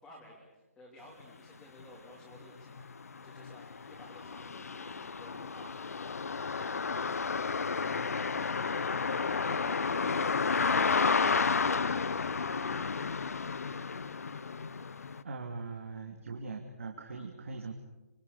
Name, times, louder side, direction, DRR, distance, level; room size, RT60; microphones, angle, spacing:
voice 1, 0.0-8.9, left 1 dB, 5° left, -6 dB, 3.0 m, -55 dB
sound 1, 1.8-1.9 2.3-15.2, left 5 dB, 75° left, 1.0 m, -32 dB
voice 2, 15.2-17.7, right 4 dB, 60° right, 2 dB, 2.9 m, -41 dB
26.0 x 25.0 x 6.8 m, 1.0 s
hypercardioid pair, 175°, 8 cm